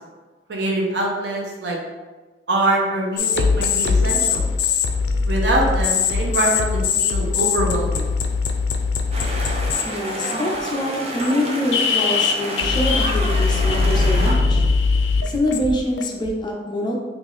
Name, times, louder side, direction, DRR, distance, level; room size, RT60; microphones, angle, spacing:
voice 1, 0.5-1.8 2.5-4.4 5.2-8.1, right 1 dB, 70° right, -2 dB, 0.7 m, -23 dB
sound 1, 3.2-9.8 10.2-10.6 11.2-11.3 11.7-16.3, left 4 dB, 85° left, 0.4 m, -21 dB
sound 2, 9.1-14.3, right 1 dB, 35° right, 0.5 m, -29 dB
voice 2, 9.8-14.6 15.2-17.0, left 1 dB, 25° left, -1 dB, 0.5 m, -25 dB
3.7 x 2.5 x 3.1 m, 1.3 s
head